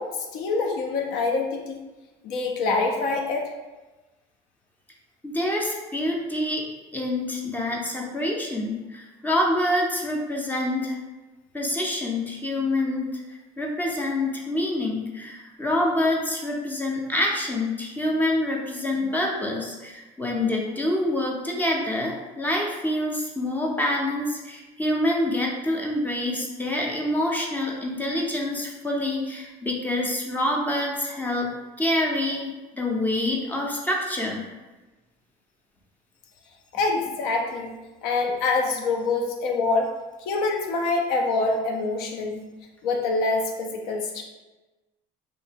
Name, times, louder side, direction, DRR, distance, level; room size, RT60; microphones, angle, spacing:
voice 1, 0.0-1.8 2.2-3.4 36.7-39.9 40.2-42.5 42.8-44.2, left 3 dB, 75° left, 2 dB, 0.5 m, -25 dB
voice 2, 5.2-6.7 6.9-11.0 11.5-13.1 13.6-31.5 31.8-34.4, left 1 dB, 10° left, -2 dB, 0.5 m, -26 dB
2.8 x 2.2 x 3.3 m, 1.1 s
cardioid pair, 120°, 16 cm